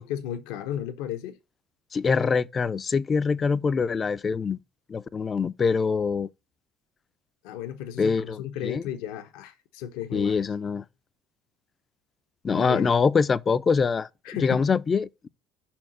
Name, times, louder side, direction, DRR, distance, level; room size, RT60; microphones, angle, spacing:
voice 1, 0.0-1.4 7.4-10.4 12.5-13.0 14.2-14.6, left 10 dB, 85° left, 0.8 m, -34 dB
voice 2, 1.9-4.6 4.9-6.3 8.0-8.8 10.1-10.8 12.4-14.1 14.4-15.3, left 5 dB, 25° left, 0.3 m, -24 dB
5.6 x 4.3 x 6.1 m
cardioid pair, 130°, 0 cm